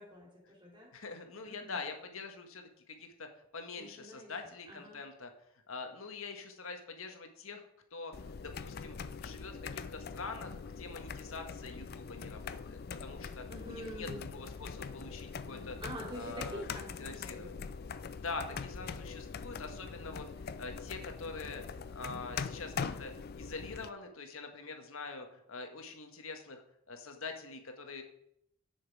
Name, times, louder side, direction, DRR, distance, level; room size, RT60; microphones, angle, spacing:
voice 1, 0.0-0.9 1.4-1.8 3.8-4.3 4.7-5.0 13.5-14.3 15.8-17.5, equal, 20° right, -3 dB, 3.3 m, -46 dB
voice 2, 0.9-5.3 5.7-7.6 7.9-9.0 9.2-15.8 16.1-16.6 17.0-17.6 18.1-23.1 23.4-26.6 26.9-28.0, left 4 dB, 75° left, 5 dB, 1.5 m, -45 dB
sound 1, 8.1-23.9, left 5 dB, 45° left, 0.4 m, -43 dB
10.0 x 6.4 x 4.7 m, 0.75 s
head